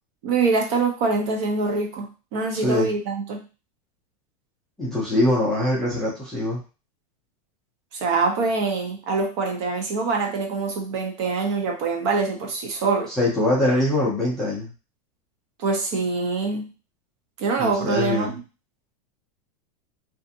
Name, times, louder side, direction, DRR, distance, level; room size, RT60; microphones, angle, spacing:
voice 1, 0.2-3.4 7.9-13.1 15.6-16.7 17.4-18.4, right 4 dB, 45° right, 2 dB, 0.7 m, -24 dB
voice 2, 2.5-2.9 4.8-6.6 13.2-14.7 17.6-18.4, left 1 dB, ahead, -7 dB, 0.4 m, -23 dB
2.4 x 2.4 x 2.6 m, 0.33 s
supercardioid pair, 175°, 20 cm